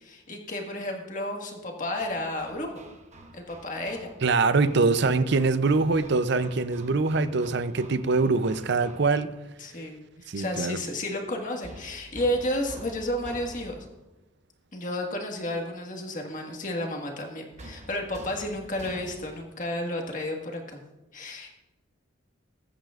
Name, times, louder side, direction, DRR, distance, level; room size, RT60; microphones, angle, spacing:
voice 1, 0.0-2.7 3.3-4.1 9.6-13.9 14.7-20.8 21.1-21.5, left 1 dB, 40° left, 1 dB, 1.7 m, -32 dB
Hammer, 2.0-9.4 11.6-14.0 17.6-19.5, right 1 dB, 35° right, 1.0 m, -47 dB
voice 2, 4.2-9.3 10.3-10.8, right 3 dB, 55° right, 13 dB, 0.6 m, -23 dB
20.0 x 9.1 x 2.5 m, 1.0 s
head